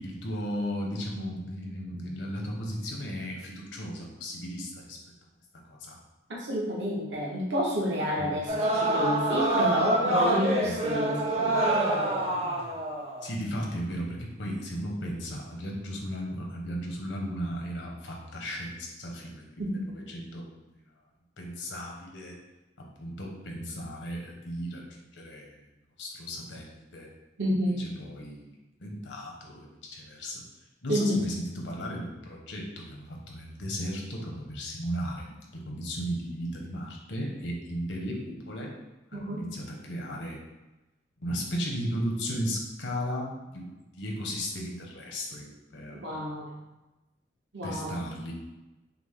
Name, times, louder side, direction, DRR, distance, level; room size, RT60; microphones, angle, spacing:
voice 1, 0.0-5.0 5.7-6.0 8.2-8.3 10.6-10.8 11.8-11.9 13.2-20.7 21.4-22.4 22.8-25.6 26.0-27.1 27.5-28.5 28.8-30.4 30.8-38.7 39.1-40.4 41.2-43.7 43.9-46.2 47.6-48.3, equal, 75° left, 0 dB, 0.9 m, -35 dB
voice 2, 6.3-11.7 19.6-19.9 27.4-27.8 30.9-31.2 39.1-39.4 46.0-46.6 47.5-48.1, equal, 70° right, -4 dB, 0.9 m, -29 dB
sound 1, 8.5-13.3, right 1 dB, 35° right, 0.6 m, -26 dB
5.9 x 2.1 x 3.5 m, 1.0 s
head